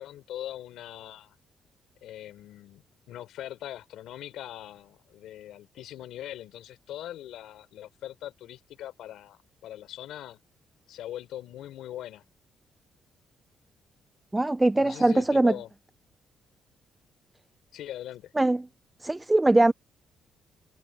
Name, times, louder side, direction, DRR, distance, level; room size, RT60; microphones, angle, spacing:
voice 1, 0.0-1.3 2.0-2.8 3.1-10.4 10.9-12.2 14.8-15.7 17.7-18.3, left 12 dB, 80° left, 4.0 m, -41 dB
voice 2, 14.3-15.5 18.4-18.6 19.0-19.7, right 2 dB, 15° right, 0.6 m, -21 dB
cardioid pair, 90°, 0 cm